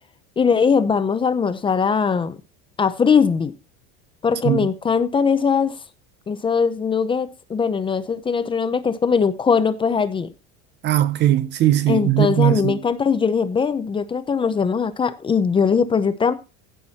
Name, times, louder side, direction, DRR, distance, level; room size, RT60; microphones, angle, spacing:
voice 1, 0.4-2.4 2.8-3.5 4.2-5.7 6.3-10.3 11.9-16.3, left 6 dB, 15° left, 0.7 m, -20 dB
voice 2, 10.8-12.8, right 13 dB, 35° right, 0.6 m, -19 dB
15.5 x 6.2 x 4.2 m
cardioid pair, 160°, 33 cm